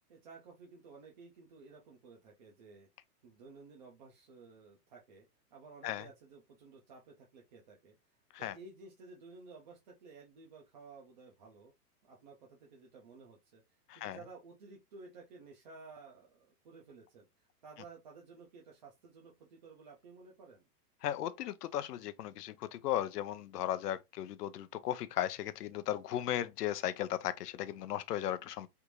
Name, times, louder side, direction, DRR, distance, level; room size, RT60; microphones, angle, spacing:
voice 1, 0.1-2.9 3.2-8.0 8.4-11.7 12.0-13.6 13.9-20.6, right 4 dB, 30° right, 0.5 m, -54 dB
voice 2, 21.0-28.7, left 12 dB, 80° left, 0.6 m, -36 dB
3.5 x 2.5 x 2.9 m
hypercardioid pair, 160°, 46 cm